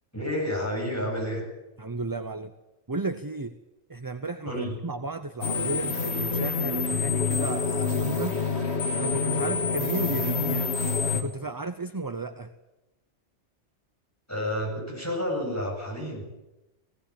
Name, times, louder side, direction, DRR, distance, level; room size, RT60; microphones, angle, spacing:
voice 1, 0.1-1.5 4.4-4.8 14.3-16.2, equal, 15° left, -2 dB, 7.9 m, -30 dB
voice 2, 1.8-2.5 2.9-3.5 3.9-8.3 9.0-10.7 11.1-12.5, right 3 dB, 20° right, 9 dB, 0.7 m, -34 dB
sound 1, 5.4-11.2, left 4 dB, 70° left, 2.2 m, -27 dB
18.5 x 17.5 x 8.7 m, 1.0 s
omnidirectional pair, 1.2 m